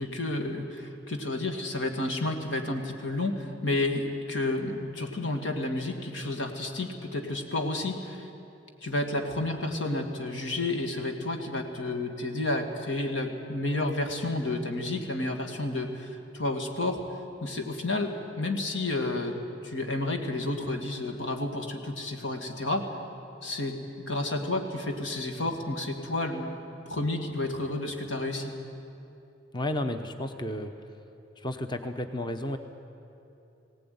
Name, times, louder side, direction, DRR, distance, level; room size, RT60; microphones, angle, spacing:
voice 1, 0.0-8.3 8.8-17.0 17.4-19.4 19.6-22.9 23.4-23.8 24.1-26.6 26.9-28.5, left 2 dB, 90° left, 4 dB, 2.2 m, -31 dB
voice 2, 29.5-30.7 31.4-32.6, left 1 dB, 25° left, 7 dB, 0.9 m, -32 dB
19.5 x 18.0 x 9.5 m, 2.8 s
head